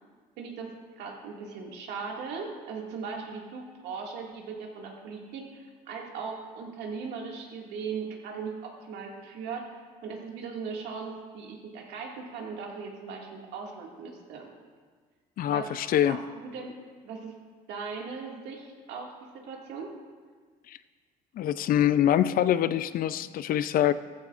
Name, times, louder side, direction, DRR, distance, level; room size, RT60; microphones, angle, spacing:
voice 1, 0.4-9.6 10.0-14.5 15.5-15.7 16.1-16.7 17.0-17.4 17.7-19.9, right 5 dB, 85° right, -1 dB, 2.1 m, -38 dB
voice 2, 15.4-16.2 20.7-20.8 21.4-23.9, left 11 dB, 60° left, 14 dB, 0.5 m, -24 dB
14.5 x 13.5 x 2.5 m, 1.5 s
cardioid pair, 110°, 17 cm